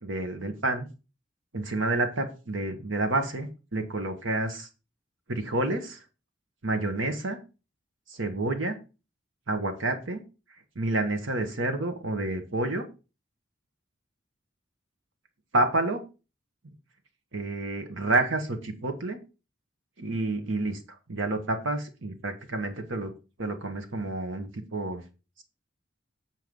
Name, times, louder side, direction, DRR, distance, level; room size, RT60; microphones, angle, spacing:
voice 1, 0.0-0.8 1.5-4.7 5.3-6.0 6.6-7.4 8.1-8.8 9.5-10.2 10.7-12.9 15.5-16.0 17.3-19.2 20.0-20.8 21.1-23.1 23.4-25.0, right 2 dB, 85° right, 6 dB, 1.4 m, -29 dB
7.9 x 4.6 x 5.2 m, 0.32 s
head